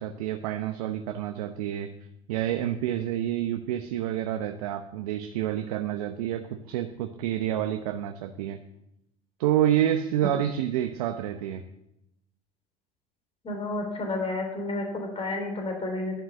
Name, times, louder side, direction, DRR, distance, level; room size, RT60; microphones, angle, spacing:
voice 1, 0.0-1.9 2.3-8.6 9.4-11.6, right 11 dB, 75° right, 7 dB, 0.9 m, -28 dB
voice 2, 13.4-16.2, left 2 dB, 30° left, 3 dB, 3.5 m, -31 dB
11.5 x 7.5 x 8.1 m, 0.86 s
hypercardioid pair, 80°, 19 cm